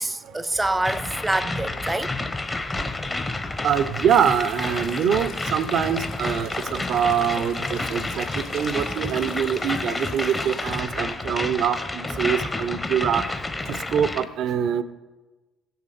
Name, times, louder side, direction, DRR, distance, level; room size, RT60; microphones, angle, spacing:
voice 1, 0.0-2.1, right 2 dB, 15° right, 0.6 m, -26 dB
sound 1, 0.8-14.3, left 2 dB, 20° left, 0.9 m, -30 dB
voice 2, 3.6-13.3 13.7-14.8, right 8 dB, 60° right, 0.6 m, -24 dB
sound 2, 4.1-10.8, left 6 dB, 65° left, 1.1 m, -44 dB
16.5 x 6.7 x 4.2 m
hypercardioid pair, 60°, 0 cm